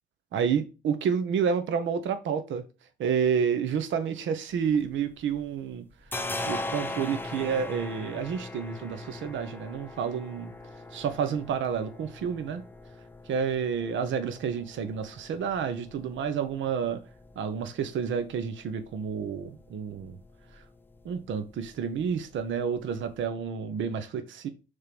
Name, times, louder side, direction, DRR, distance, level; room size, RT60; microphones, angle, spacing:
voice 1, 0.3-2.6 3.0-5.8 6.5-10.5 10.9-12.6 13.3-17.0 17.4-20.2 21.0-24.5, right 7 dB, 75° right, 1.1 m, -29 dB
sound 1, 4.5-5.5 5.7-23.2, left 2 dB, 10° left, 0.7 m, -41 dB
6.5 x 3.8 x 5.9 m
cardioid pair, 90°, 20 cm